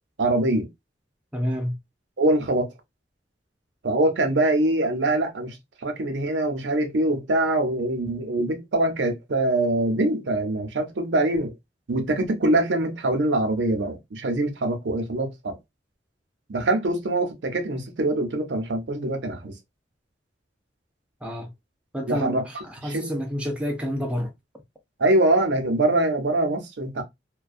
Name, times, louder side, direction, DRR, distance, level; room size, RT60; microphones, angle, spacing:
voice 1, 0.2-0.7 2.2-2.7 3.8-5.6 5.8-11.5 11.9-15.6 16.5-19.6 22.1-22.4 22.8-23.1 25.0-27.0, right 1 dB, 90° right, 0.6 m, -23 dB
voice 2, 1.3-1.8 21.2-21.5 21.9-24.3, equal, 5° right, 0.5 m, -29 dB
2.4 x 2.2 x 2.4 m
head